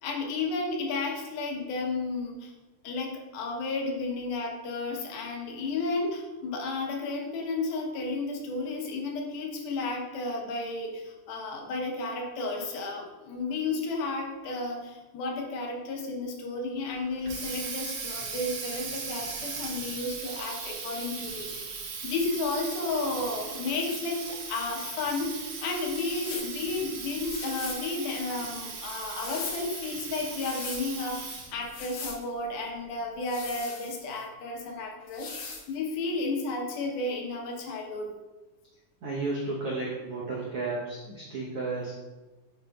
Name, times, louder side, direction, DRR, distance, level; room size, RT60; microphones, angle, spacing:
voice 1, 0.0-2.5 2.8-21.8 22.0-38.1, left 3 dB, 90° left, 0 dB, 2.9 m, -32 dB
Water tap faucet, 17.0-31.7, right 5 dB, 65° right, 1.9 m, -38 dB
sound 1, 26.0-26.5 27.2-27.9 28.8-29.7 30.2-30.8 31.6-32.2 33.2-34.2 35.1-35.7, left 4 dB, 70° left, 1.8 m, -41 dB
voice 2, 39.0-41.9, right 3 dB, 85° right, -5 dB, 1.3 m, -33 dB
9.3 x 5.0 x 2.3 m, 1.2 s
omnidirectional pair, 4.2 m